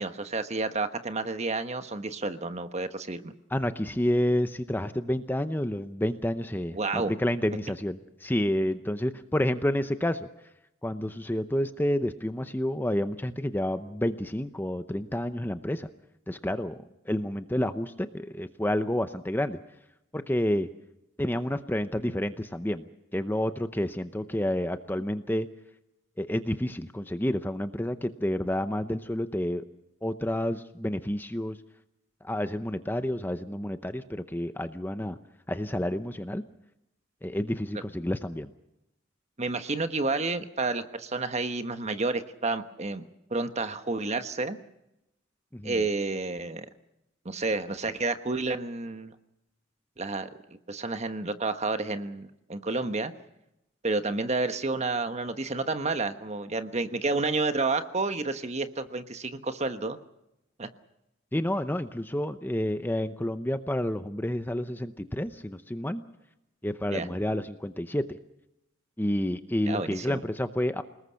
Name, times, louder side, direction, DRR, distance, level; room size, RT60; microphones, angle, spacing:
voice 1, 0.0-3.3 6.7-7.1 39.4-43.0 43.3-44.6 45.6-46.6 47.2-49.1 50.0-50.3 50.7-53.1 53.8-60.0 60.6-60.7 66.9-67.1 69.7-70.2, right 3 dB, 35° right, 9 dB, 1.2 m, -30 dB
voice 2, 3.5-10.3 10.8-15.9 16.3-16.8 17.1-19.6 20.1-20.7 21.2-22.9 23.1-25.5 26.2-29.6 30.0-31.6 32.2-35.2 35.5-36.4 37.2-38.5 45.5-45.8 61.3-66.0 66.6-68.0 69.0-70.8, left 1 dB, 10° left, 10 dB, 0.7 m, -29 dB
28.5 x 19.5 x 5.8 m, 0.87 s
head